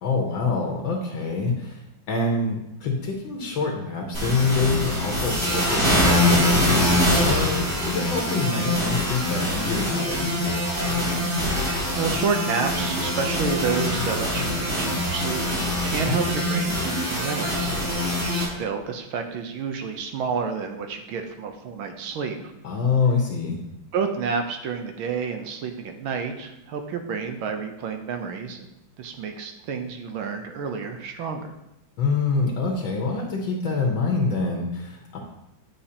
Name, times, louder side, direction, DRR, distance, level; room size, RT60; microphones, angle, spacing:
voice 1, 0.0-10.4 16.0-16.2 22.6-23.6 32.0-35.2, left 4 dB, 70° left, 0 dB, 1.6 m, -26 dB
sound 1, 4.1-18.4, left 1 dB, 50° right, 3.3 m, -24 dB
voice 2, 11.6-15.4 15.8-18.0 18.3-22.5 23.9-28.7 29.0-31.5, right 5 dB, 80° right, 5 dB, 1.5 m, -30 dB
9.6 x 5.8 x 2.8 m, 0.87 s
omnidirectional pair, 2.3 m